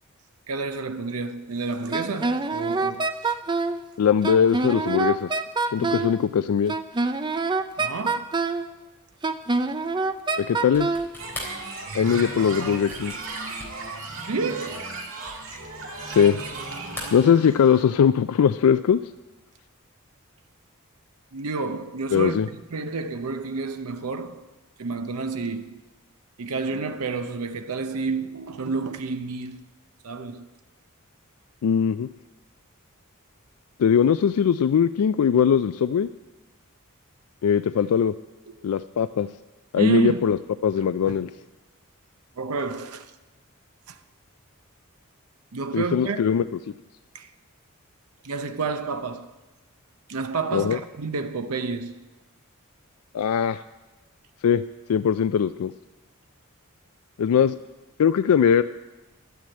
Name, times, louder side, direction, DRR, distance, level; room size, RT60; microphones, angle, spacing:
voice 1, 0.5-3.4 5.8-6.0 7.8-8.3 14.3-14.9 21.3-22.4 22.7-24.5 24.8-25.8 26.4-29.6 30.0-30.5 38.5-38.6 39.8-40.2 40.8-41.2 42.4-43.1 43.9-44.0 45.5-46.4 47.1-47.3 48.2-49.3 50.1-52.1, right 4 dB, 90° right, 0.7 m, -30 dB
Wind instrument woodwind instrument, 1.9-3.8 4.2-6.2 6.7-8.7 9.2-11.1, right 3 dB, 20° right, 0.5 m, -25 dB
voice 2, 4.0-5.4 5.7-6.7 10.4-10.9 11.9-13.1 16.1-16.4 17.1-19.0 22.1-22.5 31.6-32.1 33.8-36.1 37.4-38.1 38.6-39.3 39.7-40.4 40.6-41.3 45.7-46.4 50.5-50.8 53.1-53.6 54.4-54.6 54.9-55.7 57.2-57.6 58.0-58.6, left 7 dB, 85° left, 0.3 m, -20 dB
sound 1, 10.6-16.6 16.9-17.9, left 1 dB, 10° left, 3.6 m, -41 dB
sound 2, 11.2-17.8, right 3 dB, 60° right, 2.2 m, -35 dB
11.5 x 9.4 x 8.7 m
head